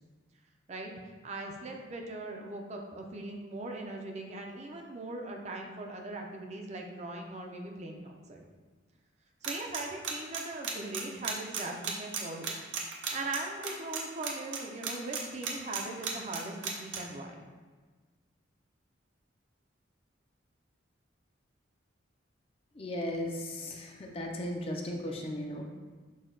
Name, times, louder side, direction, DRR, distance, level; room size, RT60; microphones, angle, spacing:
voice 1, 1.2-8.5 9.4-12.5 12.8-17.4, right 2 dB, 35° right, 2 dB, 0.5 m, -40 dB
sound 1, 9.4-17.0, right 7 dB, 75° right, 0.7 m, -34 dB
voice 2, 22.8-25.7, left 1 dB, 30° left, 2 dB, 0.4 m, -36 dB
6.2 x 2.2 x 3.8 m, 1.4 s
head